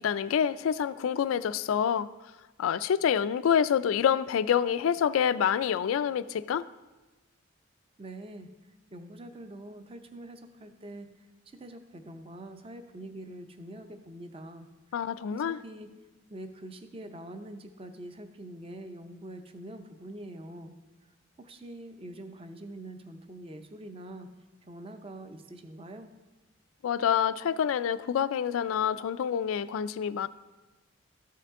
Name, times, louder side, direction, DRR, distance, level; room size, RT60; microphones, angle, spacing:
voice 1, 0.0-2.1 2.6-6.6 14.9-15.6 26.8-30.3, left 8 dB, 85° left, 16 dB, 0.3 m, -27 dB
voice 2, 8.0-8.5 8.9-11.1 11.5-15.0 15.3-16.0 16.3-20.7 21.4-24.3 24.6-26.1, right 1 dB, 30° right, 7 dB, 0.6 m, -44 dB
13.0 x 5.7 x 3.6 m, 1.2 s
head